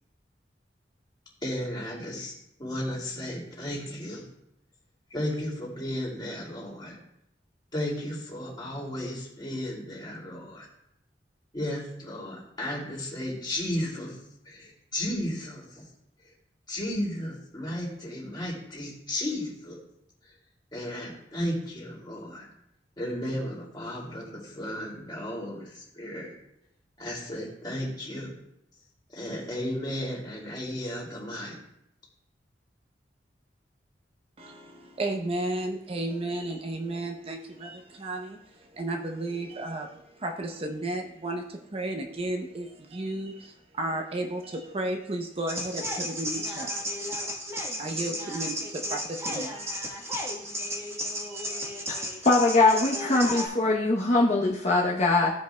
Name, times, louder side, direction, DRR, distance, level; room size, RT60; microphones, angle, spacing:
voice 1, 1.4-2.3 2.6-4.2 5.1-7.0 7.7-10.7 11.5-14.2 14.4-15.8 16.7-19.8 20.7-22.5 23.0-26.3 27.0-28.3 29.1-31.6, left 1 dB, 25° left, -4 dB, 2.5 m, -34 dB
voice 2, 34.4-47.3 47.8-50.9 51.2-52.1 53.3-53.5, right 2 dB, 35° right, 4 dB, 0.6 m, -34 dB
sound 1, 45.5-53.5, equal, 15° right, 1.2 m, -33 dB
voice 3, 51.9-55.3, left 2 dB, 40° left, -3 dB, 0.8 m, -22 dB
15.5 x 5.2 x 2.2 m, 0.79 s
head